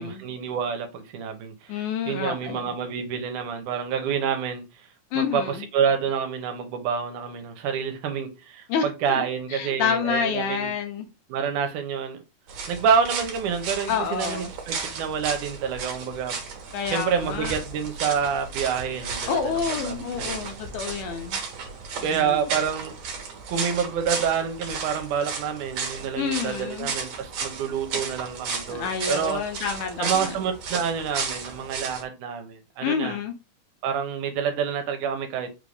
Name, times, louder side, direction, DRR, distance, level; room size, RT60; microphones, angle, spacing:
voice 1, 0.0-1.8 2.1-4.6 5.2-10.7 11.3-12.2 12.7-16.4 16.9-20.4 22.0-22.9 23.5-29.4 30.0-33.2 33.8-35.5, right 7 dB, 85° right, 2.2 m, -28 dB
voice 2, 1.7-2.8 5.1-5.7 8.7-11.1 13.9-14.5 16.7-17.6 19.3-21.4 22.0-22.5 26.2-26.9 28.7-30.4 32.8-33.3, left 6 dB, 85° left, 2.2 m, -29 dB
sound 1, 12.5-32.0, right 5 dB, 65° right, 2.0 m, -34 dB
5.3 x 2.5 x 3.3 m
omnidirectional pair, 3.6 m